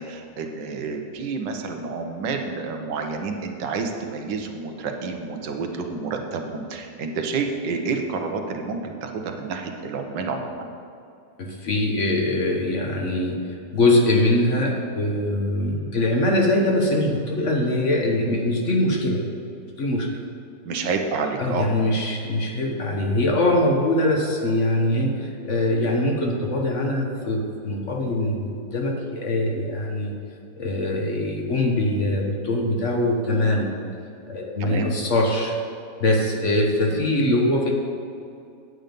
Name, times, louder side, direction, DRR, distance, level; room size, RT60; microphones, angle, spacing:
voice 1, 0.0-10.7 20.6-21.7 34.6-34.9 36.9-37.0, right 4 dB, 85° right, 4 dB, 1.6 m, -29 dB
voice 2, 11.4-13.4 13.7-19.3 19.8-20.1 21.4-30.1 30.6-33.7 34.3-35.5 36.0-37.7, left 1 dB, 50° left, 0 dB, 1.2 m, -22 dB
9.1 x 7.8 x 5.2 m, 2.5 s
omnidirectional pair, 1.9 m